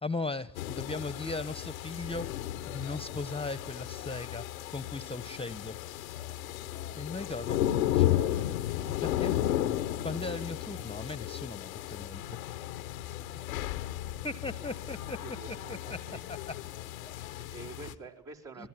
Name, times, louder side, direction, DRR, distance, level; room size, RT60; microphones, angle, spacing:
voice 1, 0.0-2.3 2.7-4.4 4.7-5.8 7.0-8.6 8.9-9.4 10.0-12.4 13.3-13.4 14.2-15.2 15.5-16.0 16.3-16.4 18.6-18.7, left 3 dB, 15° left, 17 dB, 1.1 m, -38 dB
sound 1, 0.5-17.9, left 13 dB, 85° left, 1.0 m, -34 dB
voice 2, 13.0-13.3 14.8-14.9 15.2-16.2 17.1-18.7, right 4 dB, 50° right, -2 dB, 4.7 m, -48 dB
26.0 x 20.5 x 9.2 m, 0.85 s
hypercardioid pair, 45°, 39 cm